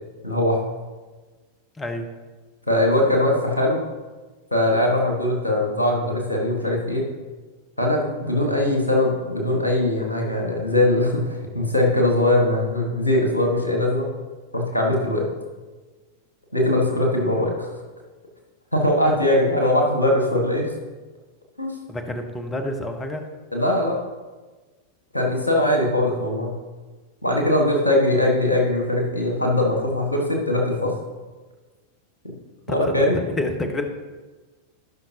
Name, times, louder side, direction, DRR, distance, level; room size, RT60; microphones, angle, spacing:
voice 1, 0.2-0.6 2.7-3.8 4.5-7.0 7.8-14.1 14.5-15.2 16.5-17.7 18.7-20.7 21.6-21.7 23.5-24.0 25.1-26.6 27.2-30.9 32.2-32.3 32.7-33.1, left 1 dB, 80° left, 0 dB, 1.8 m, -21 dB
voice 2, 1.8-2.1 21.9-23.2 32.7-33.9, left 1 dB, 15° left, 5 dB, 1.2 m, -28 dB
16.5 x 5.9 x 3.0 m, 1.3 s
figure-of-eight pair, 90°, 0 cm